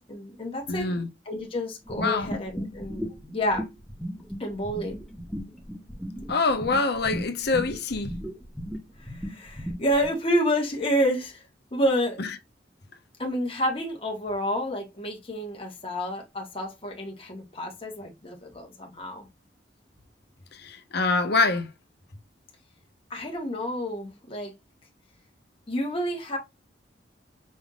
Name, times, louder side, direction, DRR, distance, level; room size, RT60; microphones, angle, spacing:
voice 1, 0.1-0.9 1.2-3.7 4.4-4.9 9.0-11.4 11.7-12.2 13.2-19.3 23.1-24.5 25.7-26.4, equal, 30° left, 1.4 m, -29 dB
voice 2, 0.7-1.1 2.0-2.3 6.3-8.2 20.6-21.7, left 3 dB, 60° left, 1.0 m, -25 dB
sound 1, 1.8-10.1, equal, ahead, 1.2 m, -36 dB
5.3 x 3.5 x 2.4 m
head